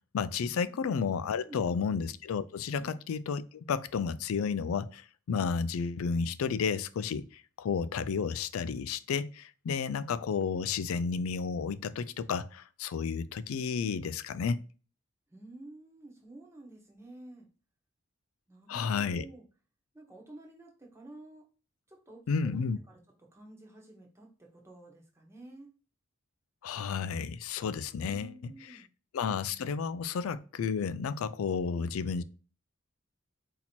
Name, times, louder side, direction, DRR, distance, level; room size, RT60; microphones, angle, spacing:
voice 1, 0.1-14.7 18.7-19.3 22.3-22.8 26.6-28.8 29.1-32.2, left 6 dB, 90° left, 0.4 m, -32 dB
voice 2, 1.4-1.9 2.7-2.9 15.3-17.5 18.5-19.4 19.9-21.5 21.9-25.7 28.0-28.9, right 2 dB, 15° right, 1.0 m, -51 dB
4.2 x 2.8 x 4.3 m
head